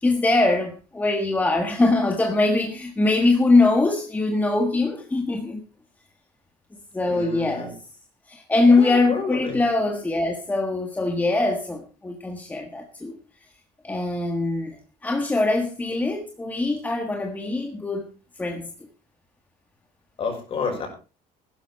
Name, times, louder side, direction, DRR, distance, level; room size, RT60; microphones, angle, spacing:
voice 1, 0.0-5.6 6.9-7.7 8.3-13.2 13.8-18.1 18.4-18.7, left 2 dB, 10° left, 4 dB, 1.6 m, -22 dB
voice 2, 7.1-7.7 8.7-9.6 20.2-20.9, left 4 dB, 40° left, 3 dB, 6.0 m, -29 dB
16.0 x 12.0 x 4.5 m, 0.34 s
cardioid pair, 165°, 15 cm